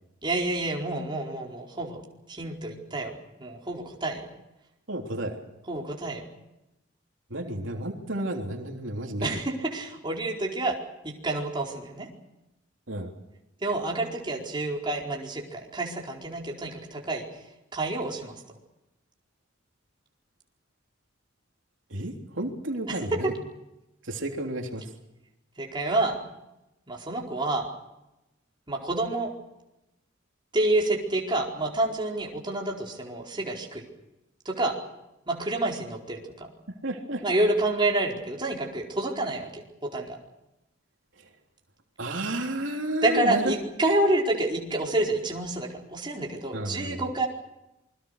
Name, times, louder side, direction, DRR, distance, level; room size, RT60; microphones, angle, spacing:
voice 1, 0.2-4.2 5.7-6.2 9.2-10.8 11.0-12.1 13.6-17.3 17.7-18.3 22.9-23.0 25.6-26.2 26.9-27.7 28.7-29.3 30.5-33.8 34.4-34.8 35.3-36.5 37.2-40.2 43.0-47.3, right 2 dB, 25° right, -1 dB, 4.6 m, -28 dB
voice 2, 4.9-5.4 7.3-9.4 12.9-13.1 21.9-23.3 24.0-24.9 36.8-37.2 41.1-41.3 42.0-43.6 43.9-44.0 46.5-47.1, right 1 dB, 75° right, 2 dB, 3.4 m, -32 dB
27.5 x 22.5 x 6.7 m, 0.92 s
head